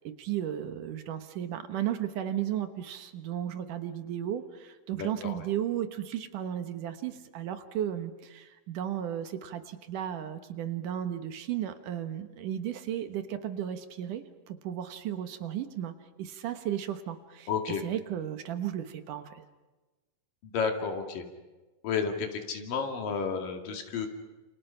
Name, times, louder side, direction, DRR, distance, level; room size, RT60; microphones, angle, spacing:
voice 1, 0.0-17.5 17.8-19.4, right 10 dB, 70° right, 8 dB, 2.8 m, -34 dB
voice 2, 4.9-5.4 17.5-17.8 20.4-21.2 21.8-24.1, left 6 dB, 75° left, 4 dB, 4.0 m, -32 dB
29.5 x 28.5 x 5.7 m, 1.2 s
omnidirectional pair, 3.9 m